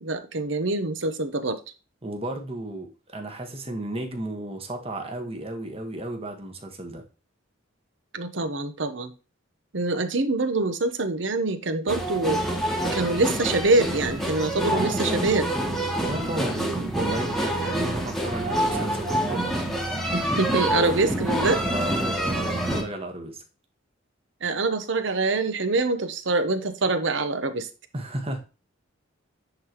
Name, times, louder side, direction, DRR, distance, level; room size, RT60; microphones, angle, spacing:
voice 1, 0.0-1.6 8.1-9.1 9.7-12.4 12.9-15.5 16.6-16.9 20.1-21.6 24.4-27.7, right 2 dB, 65° right, 0.9 m, -25 dB
voice 2, 2.0-7.0 14.7-15.3 16.0-19.6 21.7-23.4 27.9-28.4, right 1 dB, 30° right, 1.4 m, -33 dB
sound 1, 11.9-22.8, right 1 dB, ahead, 1.2 m, -27 dB
9.9 x 3.9 x 3.0 m
head